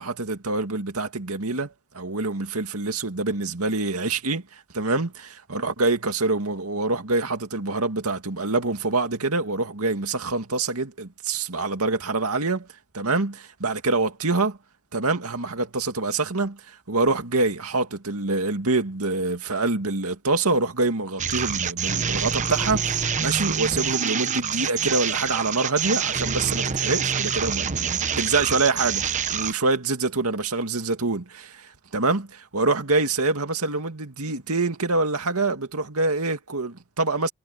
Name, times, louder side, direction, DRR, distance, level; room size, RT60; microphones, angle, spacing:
voice 1, 0.0-12.7 12.9-14.6 14.9-37.3, right 3 dB, 85° right, 2.3 m, -26 dB
sound 1, 21.2-29.5, right 7 dB, 35° right, 1.0 m, -26 dB
head